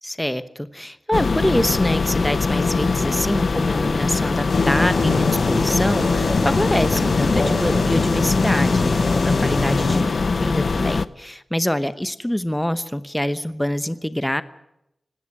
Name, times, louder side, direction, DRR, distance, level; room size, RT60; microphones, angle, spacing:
voice 1, 0.0-10.2 10.4-14.4, equal, 5° left, 12 dB, 0.9 m, -25 dB
sound 1, 1.1-11.1, left 4 dB, 65° left, 0.7 m, -22 dB
sound 2, 4.5-10.0, left 3 dB, 85° left, 4.4 m, -24 dB
19.0 x 17.5 x 9.6 m, 0.84 s
wide cardioid pair, 95°, 0 cm